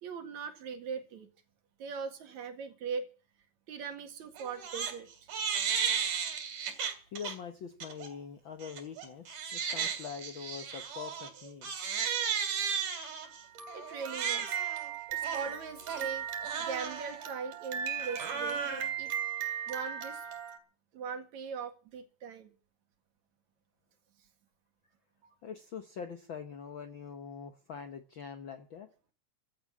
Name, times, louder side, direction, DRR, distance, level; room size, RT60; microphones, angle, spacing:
voice 1, 0.0-1.3 1.8-3.1 3.7-5.1 13.7-14.6 15.1-16.3 16.6-19.1 19.7-20.2 20.9-22.5 25.2-25.3, right 6 dB, 65° right, 6 dB, 3.2 m, -40 dB
Crying sobbing, 4.4-4.9 5.3-7.3 7.8-8.1 8.6-20.6, right 7 dB, 80° right, 4.2 m, -35 dB
voice 2, 7.1-11.7 25.4-28.9, left 7 dB, 60° left, 8 dB, 1.3 m, -44 dB
15.5 x 11.0 x 7.3 m, 0.39 s
omnidirectional pair, 3.5 m